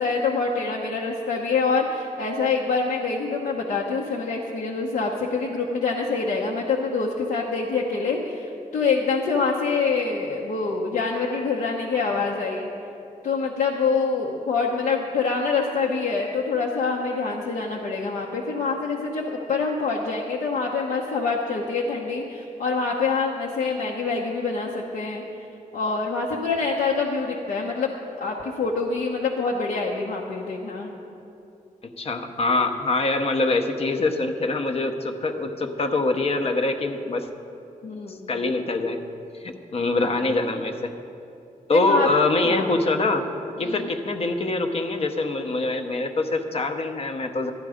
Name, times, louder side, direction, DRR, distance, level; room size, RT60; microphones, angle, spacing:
voice 1, 0.0-12.7 13.2-25.2 25.7-27.9 28.2-30.9 37.8-38.3 40.2-40.3 41.7-42.1 42.4-42.8 43.6-43.9, left 4 dB, 70° left, -2 dB, 1.0 m, -25 dB
voice 2, 32.0-37.3 38.1-39.0 39.4-40.9 41.7-43.3 43.6-47.5, left 2 dB, 45° left, 6 dB, 0.8 m, -24 dB
12.0 x 11.5 x 5.0 m, 2.8 s
wide cardioid pair, 170°, 15 cm